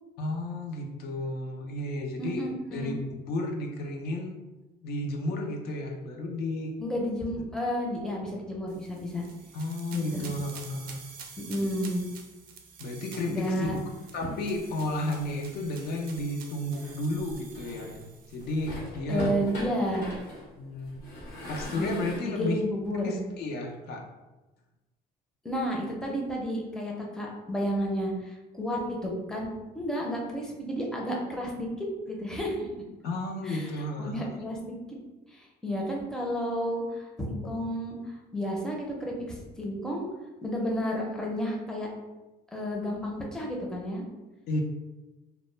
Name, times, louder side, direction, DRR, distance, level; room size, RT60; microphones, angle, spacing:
voice 1, 0.2-4.4 4.8-6.7 9.5-11.0 12.8-13.7 14.1-19.3 20.6-21.0 21.5-22.6 23.0-24.0 33.0-34.3 44.5-44.6, left 1 dB, 70° left, 2 dB, 0.5 m, -32 dB
voice 2, 2.2-3.0 6.8-9.2 9.9-10.3 11.4-12.0 13.3-13.8 19.1-20.1 21.7-22.0 22.2-23.2 25.4-29.5 29.7-31.7 32.1-32.7 33.4-33.7 34.0-34.8 35.3-38.0 38.3-40.0 40.4-41.9 42.5-44.0, equal, 5° left, -2 dB, 0.5 m, -31 dB
sound 1, 8.7-18.7, right 6 dB, 60° right, 0.4 m, -48 dB
sound 2, 13.6-16.1 16.7-18.0 18.4-22.2, left 1 dB, 90° left, 1.0 m, -42 dB
2.0 x 2.0 x 3.1 m, 1.1 s
cardioid pair, 110°, 17 cm